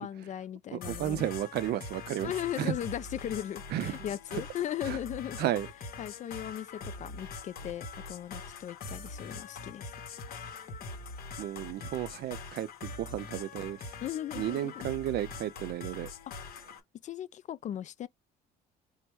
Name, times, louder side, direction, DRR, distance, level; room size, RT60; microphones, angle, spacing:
voice 1, 0.0-1.3 2.2-5.5 6.0-9.9 14.0-15.0 17.0-18.1, left 11 dB, 45° left, 0.4 m, -37 dB
voice 2, 0.7-2.7 3.7-4.0 4.3-4.4 4.9-5.0 5.4-5.7 11.4-13.8 14.3-16.1, right 12 dB, 65° right, 0.5 m, -33 dB
sound 1, 0.8-16.8, left 4 dB, 60° left, 1.0 m, -43 dB
4.5 x 2.1 x 3.3 m
cardioid pair, 110°, 18 cm